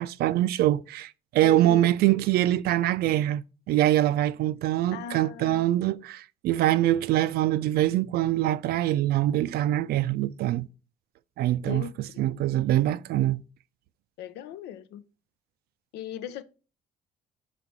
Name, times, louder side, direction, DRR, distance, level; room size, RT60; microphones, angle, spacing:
voice 1, 0.0-10.7 11.4-11.8 12.2-13.4, right 14 dB, 70° right, 0.4 m, -24 dB
voice 2, 1.4-1.9 4.9-5.7 11.6-11.9 14.2-15.0 15.9-16.4, left 10 dB, 85° left, 0.6 m, -38 dB
5.7 x 4.1 x 4.6 m
cardioid pair, 110°, 17 cm